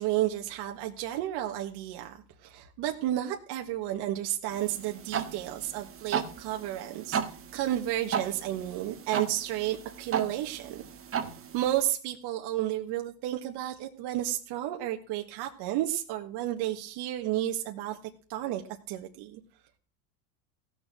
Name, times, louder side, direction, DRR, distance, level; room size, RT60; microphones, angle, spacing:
voice 1, 0.0-7.2 7.5-10.8 11.5-18.0 18.3-18.6 18.9-19.4, right 13 dB, 55° right, 3 dB, 1.8 m, -32 dB
sound 1, 4.5-11.8, right 7 dB, 30° right, 1.6 m, -36 dB
16.5 x 7.0 x 6.2 m, 0.42 s
supercardioid pair, 125°, 47 cm